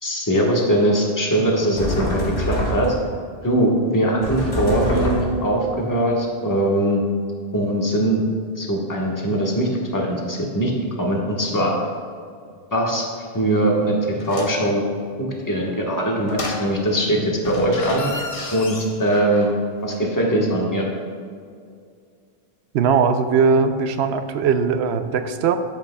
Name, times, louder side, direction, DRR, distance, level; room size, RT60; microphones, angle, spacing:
voice 1, 0.0-2.9 3.4-7.0 7.5-8.2 8.6-10.7 11.0-11.8 12.7-13.1 13.3-14.8 15.4-18.2 18.5-19.5 19.8-20.9, right 1 dB, 20° left, -2 dB, 1.3 m, -21 dB
sound 1, 1.8-3.1 4.2-5.5, left 1 dB, 80° left, 2.2 m, -25 dB
sound 2, 14.2-14.7 16.3-17.0 17.4-19.6 19.9-20.0, left 2 dB, 35° left, 0.8 m, -32 dB
voice 2, 22.7-25.6, right 5 dB, 80° right, 9 dB, 0.9 m, -19 dB
11.5 x 8.1 x 2.3 m, 2.2 s
omnidirectional pair, 1.1 m